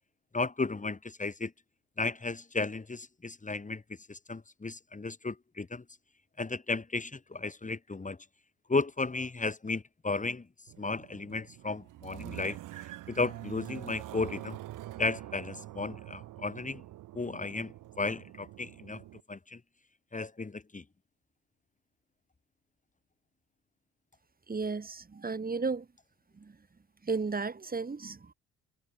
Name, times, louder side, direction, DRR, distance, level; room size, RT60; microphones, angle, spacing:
voice 1, 0.3-1.5 2.0-5.8 6.4-8.2 8.7-10.5 10.8-12.6 13.1-14.6 15.0-16.8 17.1-19.6 20.1-20.8, left 3 dB, 20° left, 2.6 m, -34 dB
sound 1, 10.7-19.2, right 15 dB, 65° right, 3.4 m, -45 dB
voice 2, 24.5-25.9 26.3-26.6 27.0-28.3, right 4 dB, 25° right, 2.8 m, -34 dB
hypercardioid pair, 50°, 34 cm